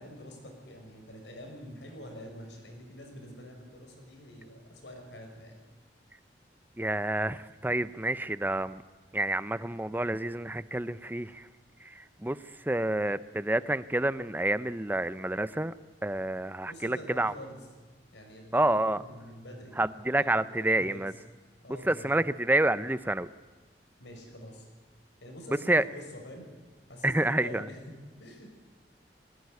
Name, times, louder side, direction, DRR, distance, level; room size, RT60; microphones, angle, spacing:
voice 1, 0.0-5.6 16.6-17.6 18.1-19.8 20.2-21.1 21.6-22.1 24.0-24.7 25.2-26.5 26.9-27.8 28.2-28.5, equal, 85° left, 3 dB, 5.9 m, -46 dB
voice 2, 6.8-8.8 9.1-11.5 11.8-15.7 16.0-17.3 18.5-19.0 19.8-21.1 21.8-23.3 25.5-25.8 27.0-27.7, right 1 dB, 10° right, 15 dB, 0.6 m, -28 dB
20.5 x 16.0 x 9.5 m, 1.4 s
head